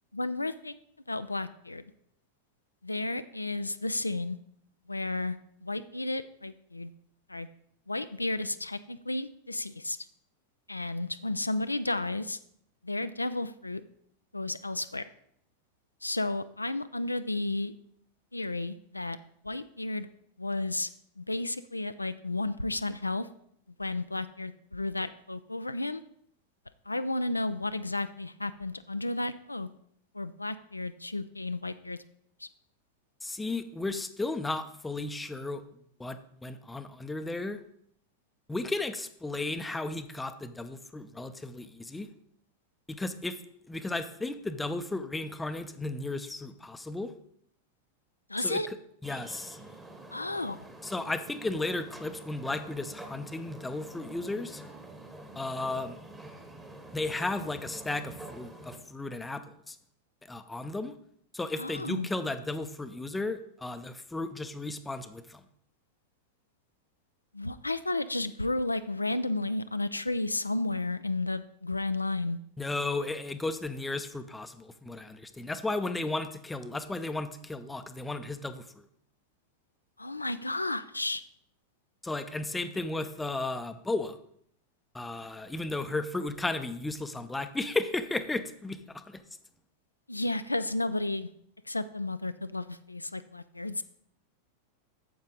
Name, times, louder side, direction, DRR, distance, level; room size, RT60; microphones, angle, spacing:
voice 1, 0.1-0.7 1.1-1.8 2.8-4.4 4.9-6.9 7.3-7.5 7.9-10.0 10.7-12.4 12.8-13.8 14.3-15.0 16.0-17.7 18.3-19.2 19.4-20.1 20.4-20.9 21.2-23.3 23.8-26.0 26.9-29.7 30.1-32.0 32.4-32.5 48.3-48.7 50.1-50.6 61.6-62.1 67.3-72.4 80.0-81.2 90.1-91.3 91.7-93.8, left 2 dB, 85° left, 12 dB, 0.3 m, -32 dB
voice 2, 33.2-35.6 36.0-37.6 38.5-42.1 42.9-43.4 43.7-47.1 48.4-48.6 49.0-49.6 50.8-54.6 55.4-56.0 56.9-59.8 60.3-60.9 61.3-65.4 72.6-78.9 82.0-84.2 84.9-89.2, left 2 dB, 10° left, 10 dB, 0.6 m, -34 dB
sound 1, 49.0-58.8, right 1 dB, 10° right, 1.1 m, -47 dB
9.3 x 7.3 x 3.9 m, 0.68 s
figure-of-eight pair, 90°, 0 cm